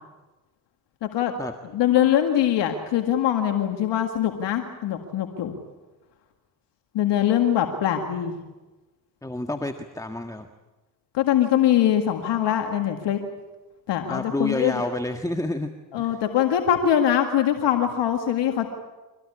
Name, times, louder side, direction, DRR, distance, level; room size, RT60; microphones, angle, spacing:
voice 1, 1.0-1.3 1.7-5.6 6.9-8.4 11.1-13.2 13.9-14.8 15.9-18.7, left 10 dB, 85° left, 5 dB, 2.0 m, -22 dB
voice 2, 9.2-10.5 14.1-15.7 16.0-16.2, left 1 dB, 10° left, 6 dB, 1.6 m, -29 dB
25.0 x 18.0 x 9.9 m, 1.2 s
supercardioid pair, 60°, 42 cm